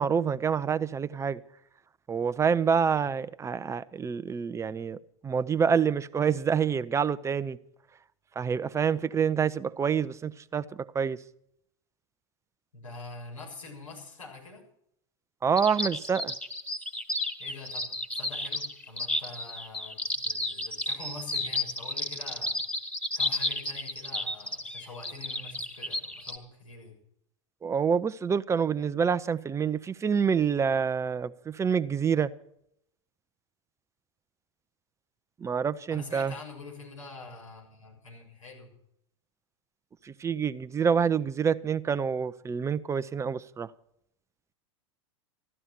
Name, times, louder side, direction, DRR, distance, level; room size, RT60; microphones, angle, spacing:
voice 1, 0.0-1.4 2.1-7.6 8.4-11.2 15.4-16.3 27.6-32.3 35.4-36.3 40.0-43.7, right 6 dB, 15° right, 0.7 m, -27 dB
voice 2, 12.7-14.6 17.4-22.6 23.1-26.9 35.9-38.7, left 3 dB, 85° left, 6.7 m, -45 dB
sound 1, 15.6-26.4, left 1 dB, 10° left, 1.8 m, -32 dB
14.5 x 12.0 x 6.0 m
hypercardioid pair, 95°, 16 cm